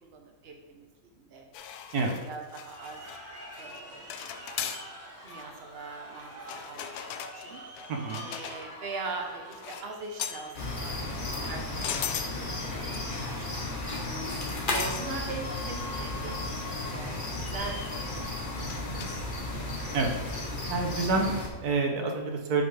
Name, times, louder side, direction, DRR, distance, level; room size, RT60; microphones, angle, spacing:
voice 1, 0.0-1.4 2.0-3.0 3.6-4.4 5.2-7.6 8.1-12.6 12.9-19.1 19.4-19.7, right 3 dB, 45° right, 2 dB, 1.1 m, -42 dB
sound 1, 1.5-3.2 3.5-3.8 4.1-4.9 5.3-5.5 6.4-8.8 9.5-9.9 10.2-10.5 11.3-12.4 12.9-13.4 13.7-14.0 14.7-15.1 15.5-15.6 16.0-16.1 16.4-16.5 17.5-17.9 18.7-19.3 20.3-20.5, left 9 dB, 80° left, 1.1 m, -39 dB
sound 2, 2.6-20.6, left 1 dB, 10° right, 1.2 m, -46 dB
voice 2, 7.9-8.2 19.9-20.1 20.7-22.6, right 3 dB, 80° right, 2 dB, 1.4 m, -28 dB
sound 3, 10.5-21.5, left 2 dB, 35° left, 1.3 m, -34 dB
8.2 x 5.1 x 3.4 m, 1.2 s
omnidirectional pair, 1.6 m